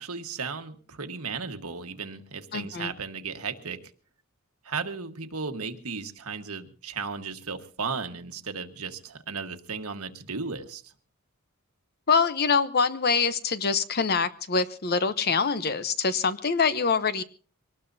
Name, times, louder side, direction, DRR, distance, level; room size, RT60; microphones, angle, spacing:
voice 1, 0.0-3.8 4.6-10.9, right 5 dB, 75° right, 6 dB, 1.5 m, -35 dB
voice 2, 2.5-2.9 12.1-17.2, left 5 dB, 45° left, 12 dB, 0.9 m, -25 dB
24.0 x 19.0 x 2.7 m, 0.41 s
head